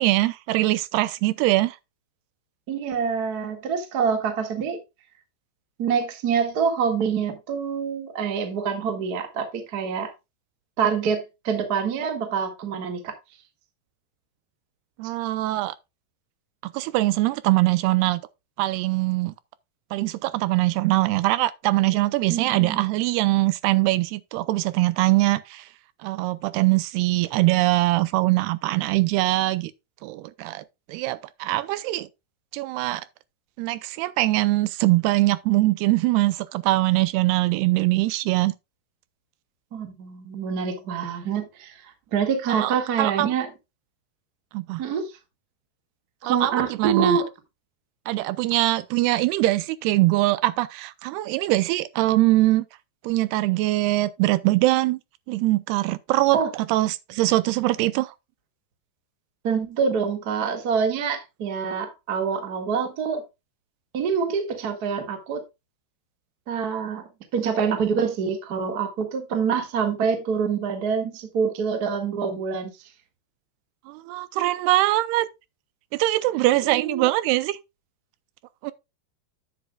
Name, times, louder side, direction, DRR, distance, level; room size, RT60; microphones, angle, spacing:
voice 1, 0.0-1.8 15.0-15.8 16.6-18.2 18.6-19.3 19.9-25.7 26.0-29.7 30.0-32.1 32.5-33.1 33.6-38.5 42.5-43.3 44.5-44.8 46.3-47.2 48.1-52.7 53.0-55.0 55.3-56.4 56.7-58.1 73.9-75.3 75.9-77.6 78.6-78.7, right 18 dB, 80° right, 2.5 m, -22 dB
voice 2, 2.7-4.8 5.8-10.1 10.8-13.1 22.3-22.8 39.7-43.5 44.8-45.1 46.2-47.2 56.3-56.5 59.4-63.2 63.9-65.4 66.5-67.0 67.3-72.7 76.6-77.1, right 6 dB, 50° right, 1.1 m, -26 dB
11.0 x 8.2 x 2.3 m
omnidirectional pair, 4.8 m